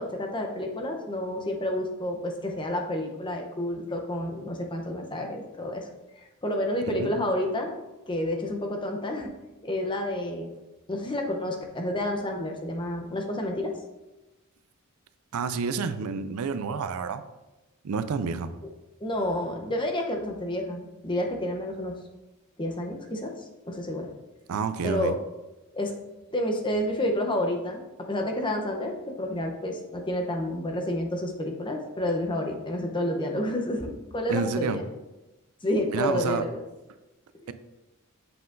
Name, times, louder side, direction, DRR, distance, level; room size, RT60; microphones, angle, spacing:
voice 1, 0.0-5.9 6.2-7.7 8.1-9.3 9.6-10.5 10.9-13.7 19.0-21.9 22.6-24.1 24.8-25.1 25.7-25.9 26.3-27.8 28.1-34.8 35.6-36.6 37.4-37.5, left 1 dB, 20° left, 2 dB, 0.7 m, -29 dB
voice 2, 15.3-17.2 17.8-18.5 24.5-25.2 34.3-34.8 35.9-36.4 37.5-37.6, right 5 dB, 75° right, 11 dB, 0.4 m, -29 dB
7.8 x 5.6 x 2.6 m, 1.1 s
head